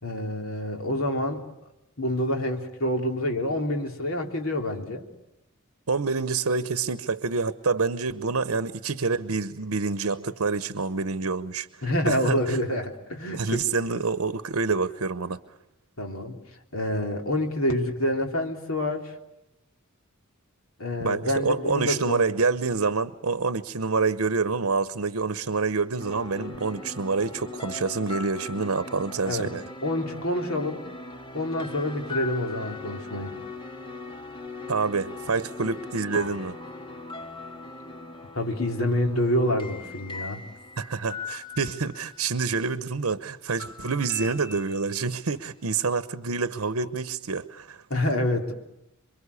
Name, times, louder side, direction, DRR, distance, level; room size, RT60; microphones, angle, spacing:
voice 1, 0.0-1.4 2.0-5.0 8.4-8.6 11.8-14.0 16.0-16.4 16.7-19.2 20.8-22.2 29.2-29.5 29.8-30.8 31.3-33.3 38.4-40.4 46.8-46.9 47.9-48.5, left 1 dB, 70° left, 3 dB, 3.5 m, -27 dB
voice 2, 5.9-11.7 12.0-12.6 13.3-15.4 21.0-29.6 34.7-36.6 40.8-47.8, right 4 dB, 75° right, 13 dB, 0.9 m, -27 dB
sound 1, 26.0-42.6 43.6-45.3, left 3 dB, 25° left, 2.0 m, -40 dB
27.5 x 23.5 x 8.3 m, 0.86 s
head